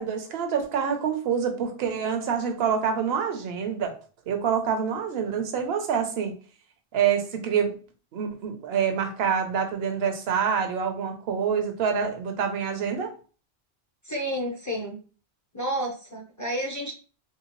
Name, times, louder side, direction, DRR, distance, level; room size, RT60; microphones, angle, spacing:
voice 1, 0.0-3.9 4.3-6.3 6.9-7.8 8.1-13.1, right 7 dB, 70° right, 6 dB, 0.9 m, -26 dB
voice 2, 14.0-15.0 15.5-16.9, right 1 dB, 25° left, -1 dB, 0.4 m, -30 dB
3.1 x 2.8 x 3.0 m, 0.37 s
omnidirectional pair, 1.1 m